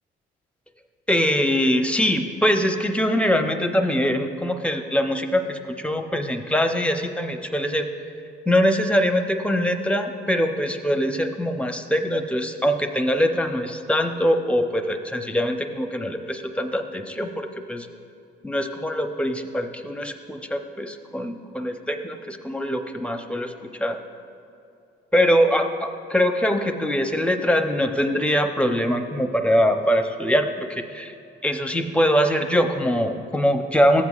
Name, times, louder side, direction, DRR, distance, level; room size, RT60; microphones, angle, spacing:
voice 1, 1.1-7.9 8.5-17.9 18.4-24.0 25.1-31.1 31.4-34.0, equal, 5° left, 6 dB, 0.6 m, -23 dB
14.5 x 8.1 x 2.4 m, 2.6 s
cardioid pair, 90°, 20 cm